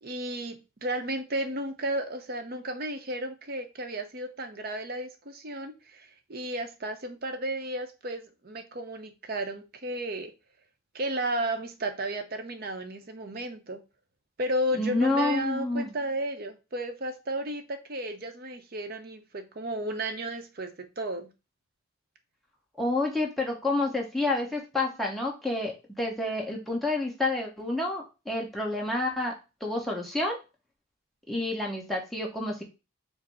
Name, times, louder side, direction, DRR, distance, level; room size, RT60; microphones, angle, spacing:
voice 1, 0.0-10.3 10.9-13.8 14.4-21.3, right 1 dB, 45° right, 7 dB, 0.6 m, -33 dB
voice 2, 14.7-15.9 22.8-29.3 29.6-30.4 31.3-32.6, left 2 dB, ahead, -2 dB, 0.8 m, -29 dB
4.8 x 2.0 x 4.6 m, 0.29 s
head